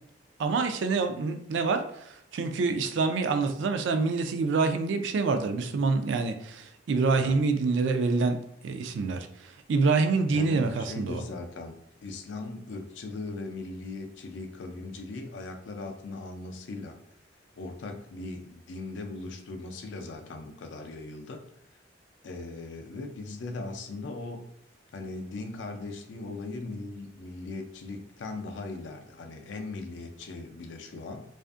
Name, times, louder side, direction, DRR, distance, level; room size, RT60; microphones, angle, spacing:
voice 1, 0.4-8.4 8.6-11.2, right 4 dB, 80° right, 7 dB, 0.3 m, -26 dB
voice 2, 10.3-11.8 12.0-17.0 17.5-21.4 22.2-24.4 24.9-31.2, left 3 dB, 80° left, 4 dB, 0.4 m, -39 dB
2.5 x 2.4 x 2.4 m, 0.72 s
head